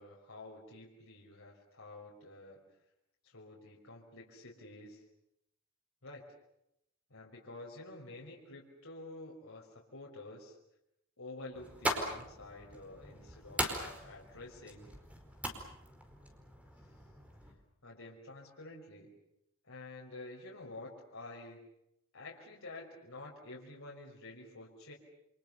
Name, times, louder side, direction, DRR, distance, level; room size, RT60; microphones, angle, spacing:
voice 1, 0.0-2.6 3.2-5.0 6.0-6.2 7.1-10.5 11.2-14.9 17.8-19.1 19.6-21.6 22.1-24.9, left 2 dB, 70° left, -3 dB, 5.4 m, -49 dB
sound 1, 11.5-17.5, equal, 5° right, 4.7 m, -40 dB
29.0 x 27.0 x 6.9 m, 0.80 s
head